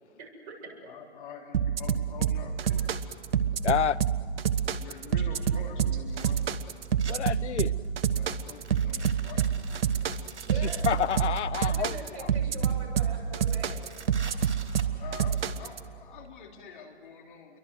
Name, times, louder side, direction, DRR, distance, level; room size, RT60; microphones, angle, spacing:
voice 1, 0.1-0.6 0.8-0.9 5.5-5.6 10.5-11.0 11.6-13.8, right 3 dB, 35° right, 7.7 m, -43 dB
voice 2, 0.8-2.9 4.7-6.4 8.1-9.8 15.0-17.6, left 5 dB, 45° left, 3.1 m, -46 dB
sound 1, 1.5-15.8, right 8 dB, 55° right, 1.2 m, -27 dB
voice 3, 3.6-4.0 7.1-7.7 10.6-12.3, left 9 dB, 80° left, 0.7 m, -29 dB
sound 2, 4.6-4.7 5.9-7.2 7.7-8.0 8.5-11.4 12.2-12.8 13.1-13.2 13.5-15.5, right 5 dB, 80° right, 3.5 m, -47 dB
29.0 x 23.5 x 8.2 m
hypercardioid pair, 145°, 34 cm